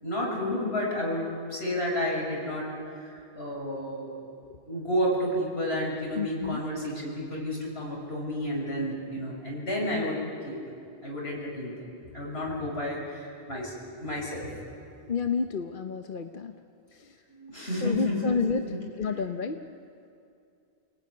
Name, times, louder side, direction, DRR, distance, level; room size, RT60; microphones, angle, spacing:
voice 1, 0.0-2.7 2.9-4.1 4.7-10.6 11.0-11.9 12.1-13.7 14.0-14.5 17.3-18.8 19.1-19.3, left 1 dB, 75° left, -3 dB, 7.1 m, -31 dB
voice 2, 6.2-6.6 15.1-16.5 17.0-17.1 17.8-18.6 19.0-19.6, left 5 dB, 55° left, 6 dB, 1.0 m, -29 dB
29.5 x 19.0 x 9.7 m, 2.5 s
omnidirectional pair, 1.1 m